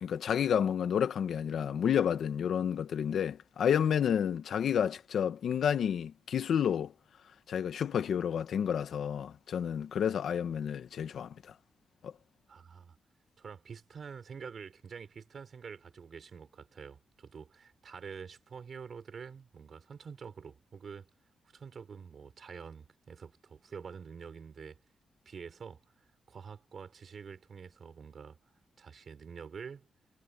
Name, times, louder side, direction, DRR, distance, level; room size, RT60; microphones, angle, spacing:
voice 1, 0.0-6.9 7.5-11.5 12.0-12.1, left 8 dB, 75° left, 1.6 m, -30 dB
voice 2, 12.5-13.0 13.4-21.1 21.5-24.8 25.3-25.8 26.3-28.4 28.8-29.9, right 6 dB, 60° right, 4.1 m, -47 dB
cardioid pair, 85°, 0 cm